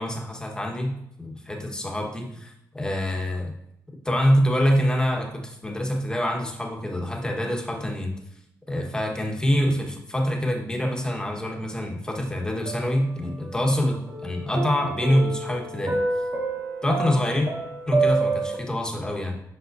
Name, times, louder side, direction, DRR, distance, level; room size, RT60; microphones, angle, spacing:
voice 1, 0.0-3.5 4.0-8.1 8.7-16.0 16.8-17.5 17.9-19.4, equal, 10° left, 0 dB, 1.3 m, -25 dB
sound 1, 12.6-13.7 14.1-18.6, right 3 dB, 45° right, 1.2 m, -28 dB
8.0 x 5.6 x 2.7 m, 0.78 s
cardioid pair, 90°, 6 cm